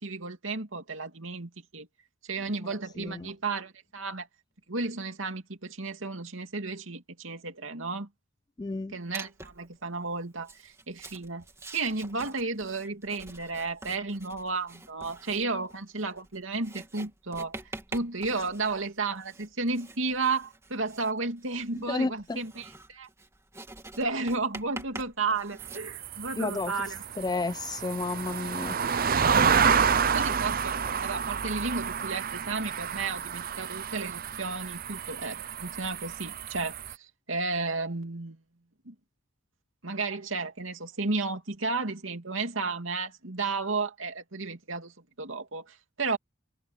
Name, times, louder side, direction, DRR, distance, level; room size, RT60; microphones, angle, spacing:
voice 1, 0.0-1.9 2.2-4.3 4.7-8.1 8.9-11.4 11.7-23.1 24.0-27.0 29.8-38.4 38.8-38.9 39.8-46.2, right 3 dB, 80° right, 2.7 m, -33 dB
voice 2, 3.0-3.3 8.6-9.0 21.7-22.4 26.4-28.8, left 3 dB, 20° left, 0.3 m, -32 dB
Writing, 9.1-9.7 10.4-25.8, right 2 dB, 15° right, 3.2 m, -46 dB
sound 1, 25.6-36.9, right 6 dB, 45° right, 0.7 m, -29 dB
head